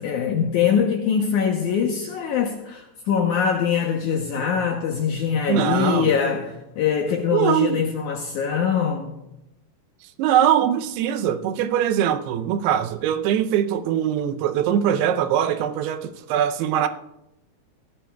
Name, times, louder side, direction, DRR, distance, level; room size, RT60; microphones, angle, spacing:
voice 1, 0.0-9.1, left 7 dB, 75° left, 1.9 m, -23 dB
voice 2, 5.5-6.1 7.3-7.8 10.2-16.9, right 10 dB, 85° right, 2.7 m, -22 dB
18.0 x 14.5 x 2.3 m
omnidirectional pair, 4.5 m